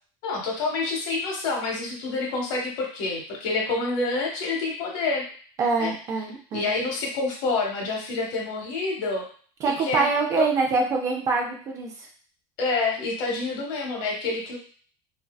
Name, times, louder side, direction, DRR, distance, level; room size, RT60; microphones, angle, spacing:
voice 1, 0.2-5.3 5.8-5.9 6.5-9.2 9.6-10.1 10.4-10.5 12.6-14.6, left 3 dB, 60° left, -1 dB, 0.9 m, -27 dB
voice 2, 5.6-6.7 9.6-11.9, right 4 dB, 25° right, 1 dB, 0.4 m, -24 dB
2.6 x 2.1 x 2.2 m, 0.44 s
cardioid pair, 175°, 12 cm